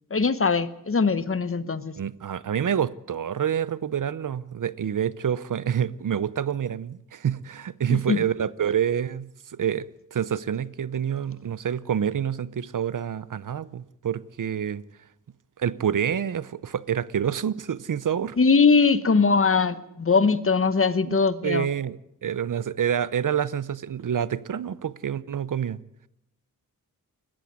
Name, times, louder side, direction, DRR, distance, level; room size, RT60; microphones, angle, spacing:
voice 1, 0.1-1.9 7.9-8.2 18.4-21.7, left 4 dB, 40° left, 1.1 m, -21 dB
voice 2, 2.0-14.8 15.6-18.4 21.0-21.2 21.4-25.8, right 8 dB, 60° right, 0.7 m, -27 dB
20.5 x 14.0 x 9.5 m
wide cardioid pair, 90°, 35 cm